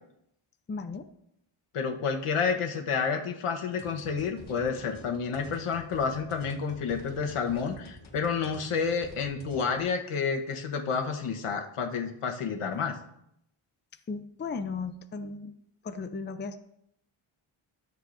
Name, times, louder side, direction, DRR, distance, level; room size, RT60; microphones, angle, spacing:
voice 1, 0.7-1.1 12.7-12.8 14.1-15.5 15.8-16.6, left 4 dB, 25° left, 8 dB, 0.5 m, -36 dB
voice 2, 1.7-13.0, left 5 dB, 90° left, 4 dB, 1.2 m, -30 dB
sound 1, 3.8-9.8, left 2 dB, 65° left, 1.6 m, -49 dB
13.0 x 7.4 x 2.6 m, 0.76 s
wide cardioid pair, 110°, 50 cm